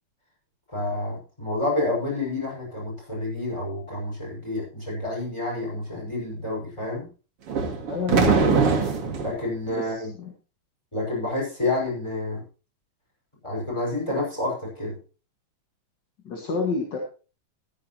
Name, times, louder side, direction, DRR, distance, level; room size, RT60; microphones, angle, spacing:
voice 1, 0.7-7.1 9.2-10.1 10.9-12.4 13.4-15.0, left 2 dB, 10° left, -2 dB, 6.0 m, -29 dB
sound 1, 7.5-9.3, right 5 dB, 50° right, 2.6 m, -22 dB
voice 2, 7.8-8.8 9.7-10.3 16.2-17.0, left 4 dB, 40° left, 1 dB, 2.0 m, -29 dB
14.5 x 12.0 x 3.0 m, 0.34 s
omnidirectional pair, 3.7 m